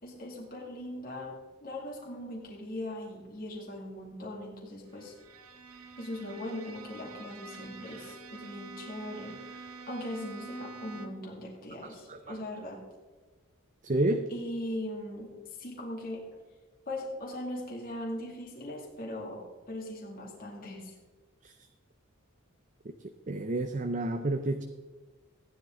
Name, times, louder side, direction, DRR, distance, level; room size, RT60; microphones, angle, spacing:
voice 1, 0.0-5.1 6.0-12.8 14.3-16.2 16.9-21.0, left 1 dB, 40° left, -2 dB, 2.4 m, -40 dB
Bowed string instrument, 4.9-11.4, right 4 dB, 80° right, 1.1 m, -47 dB
voice 2, 11.8-12.4 13.8-14.3 21.4-21.5 23.3-24.6, right 2 dB, 35° right, 7 dB, 0.6 m, -30 dB
14.5 x 10.0 x 3.8 m, 1.3 s
head